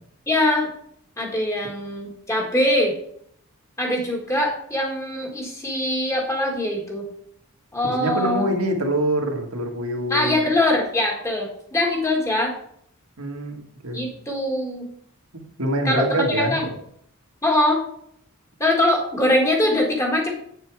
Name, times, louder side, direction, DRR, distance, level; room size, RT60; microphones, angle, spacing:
voice 1, 0.3-0.7 1.2-2.9 3.8-7.1 7.7-8.5 10.1-12.5 13.9-14.8 15.8-16.6 17.4-17.8 18.6-20.3, left 1 dB, 15° left, -1 dB, 1.7 m, -22 dB
voice 2, 7.8-10.4 13.2-14.1 15.3-16.7, right 1 dB, 80° right, 2 dB, 1.8 m, -25 dB
8.5 x 6.8 x 4.8 m, 0.67 s
head